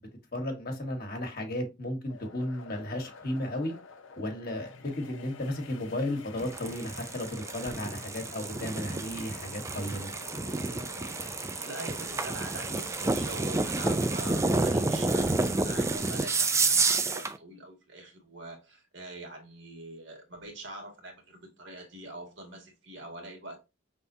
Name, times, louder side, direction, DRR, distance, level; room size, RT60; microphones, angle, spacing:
voice 1, 0.3-3.7 4.1-10.1, left 1 dB, 50° left, 1.3 m, -34 dB
sound 1, 2.1-17.0, left 4 dB, 85° left, 0.8 m, -49 dB
sound 2, 6.4-17.4, right 3 dB, 15° right, 0.4 m, -29 dB
voice 2, 11.6-23.7, right 1 dB, 65° right, 1.8 m, -44 dB
5.5 x 3.6 x 2.7 m
head